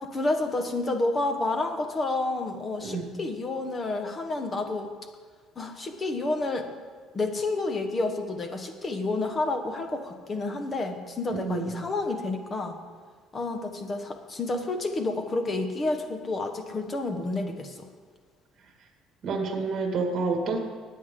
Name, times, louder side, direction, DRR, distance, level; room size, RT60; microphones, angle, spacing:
voice 1, 0.0-4.9 5.6-6.7 7.1-12.8 13.3-17.9, left 2 dB, 25° left, 6 dB, 1.2 m, -30 dB
voice 2, 2.8-3.1 11.3-11.7 19.2-20.6, right 3 dB, 40° right, 2 dB, 2.0 m, -29 dB
20.0 x 8.5 x 3.8 m, 1.5 s
cardioid pair, 150°, 0 cm